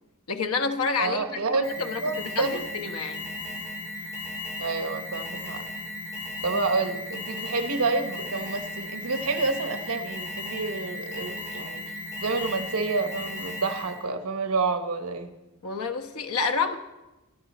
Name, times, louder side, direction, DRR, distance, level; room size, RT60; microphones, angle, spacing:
voice 1, 0.3-3.3 15.6-16.8, left 4 dB, 90° left, 7 dB, 1.3 m, -29 dB
voice 2, 1.0-1.7 2.0-2.6 4.6-5.6 6.4-11.8 12.2-15.3, right 3 dB, 85° right, 7 dB, 1.1 m, -28 dB
Alarm, 1.6-14.0, left 2 dB, 15° left, 4.2 m, -36 dB
24.5 x 10.0 x 4.2 m, 1.1 s
head